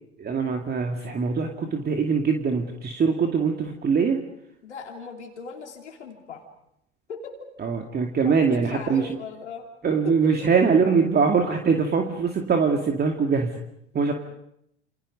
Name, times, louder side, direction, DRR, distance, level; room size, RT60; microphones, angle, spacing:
voice 1, 0.2-4.2 7.6-9.0 9.8-13.6 13.9-14.1, right 5 dB, 30° right, 3 dB, 2.4 m, -22 dB
voice 2, 4.6-6.4 7.1-7.4 8.2-9.6 10.0-10.5 14.0-14.1, left 5 dB, 85° left, 2 dB, 3.2 m, -38 dB
29.0 x 27.5 x 5.3 m, 0.77 s
hypercardioid pair, 75°, 34 cm